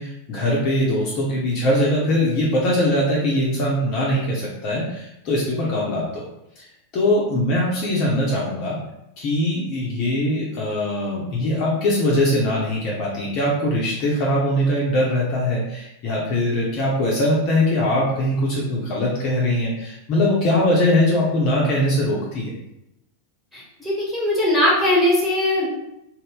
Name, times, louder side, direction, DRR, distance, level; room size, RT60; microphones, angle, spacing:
voice 1, 0.0-6.2 6.6-6.7 6.9-8.8 9.2-22.5, left 1 dB, 40° left, -5 dB, 0.6 m, -21 dB
voice 2, 23.5-25.7, left 1 dB, 5° left, -6 dB, 1.2 m, -20 dB
2.6 x 2.1 x 3.5 m, 0.83 s
figure-of-eight pair, 90°, 0 cm